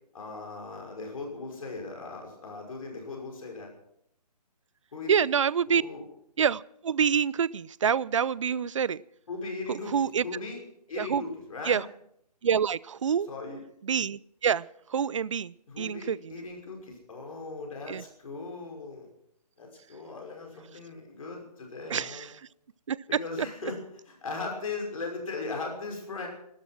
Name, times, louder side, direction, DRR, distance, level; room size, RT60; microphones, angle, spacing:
voice 1, 0.1-3.7 4.9-5.3 5.7-6.0 9.3-10.0 10.2-11.8 13.3-13.6 15.7-19.1 19.6-22.3 23.1-23.8 24.1-26.3, left 3 dB, 55° left, 2 dB, 5.7 m, -38 dB
voice 2, 5.1-5.8 6.4-9.0 9.7-10.2 11.0-11.2 11.7-11.8 12.4-13.3 13.9-14.7 14.9-16.3 17.9-18.0 21.9-22.3 22.9-23.0, right 7 dB, 50° right, 23 dB, 0.5 m, -27 dB
16.5 x 13.0 x 6.1 m, 0.74 s
figure-of-eight pair, 155°, 21 cm